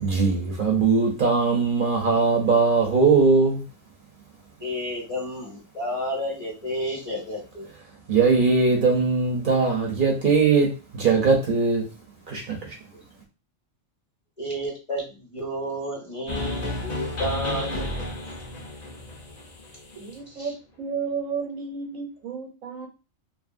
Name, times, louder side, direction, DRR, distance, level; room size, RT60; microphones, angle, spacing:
voice 1, 0.0-3.6 8.1-11.8 12.3-12.6, right 4 dB, 50° right, 0 dB, 0.8 m, -20 dB
voice 2, 4.6-7.7 14.4-17.9 20.3-20.5, equal, 25° left, -3 dB, 1.0 m, -31 dB
sound 1, 16.3-20.2, left 2 dB, 45° left, 0.6 m, -32 dB
voice 3, 20.0-20.5 20.8-22.9, right 5 dB, 90° right, 2 dB, 1.2 m, -32 dB
2.6 x 2.6 x 2.5 m, 0.30 s
omnidirectional pair, 1.4 m